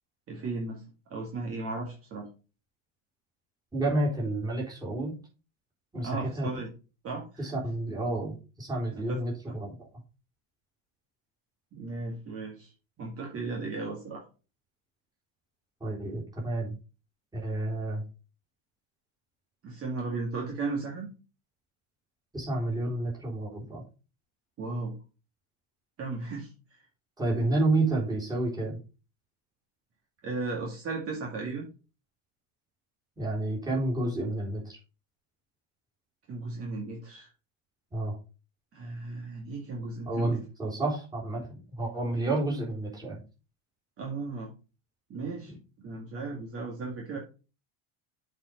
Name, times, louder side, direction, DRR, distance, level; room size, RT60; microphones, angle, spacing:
voice 1, 0.3-0.8 1.1-2.3 6.0-6.7 7.0-7.6 8.9-9.2 11.7-12.7 13.0-14.2 19.6-21.1 24.6-24.9 26.0-26.5 30.2-31.7 36.3-37.3 38.7-40.4 44.0-44.5 45.1-47.2, right 3 dB, 35° right, -1 dB, 2.2 m, -35 dB
voice 2, 3.7-5.2 5.9-6.5 7.4-9.8 15.8-16.8 17.3-18.0 22.3-23.8 27.2-28.8 33.2-34.8 37.9-38.2 40.1-41.4 41.8-43.2, right 2 dB, 10° right, -4 dB, 3.8 m, -30 dB
7.8 x 4.8 x 5.2 m, 0.33 s
cardioid pair, 150°, 40 cm